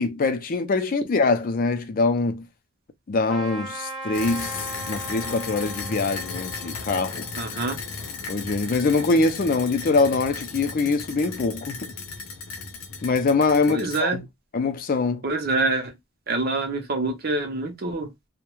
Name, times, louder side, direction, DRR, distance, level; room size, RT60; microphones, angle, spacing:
voice 1, 0.0-2.4 3.1-4.6 4.9-7.3 8.3-11.8 13.0-14.3 14.5-15.2, left 3 dB, 40° left, 0.4 m, -23 dB
Trumpet, 3.3-8.3, right 2 dB, ahead, 0.6 m, -39 dB
sound 1, 4.1-14.0, left 4 dB, 80° left, 0.6 m, -35 dB
voice 2, 7.4-7.8 13.7-14.2 15.2-15.9 16.3-18.1, right 3 dB, 45° right, 0.6 m, -26 dB
2.2 x 2.1 x 3.0 m
head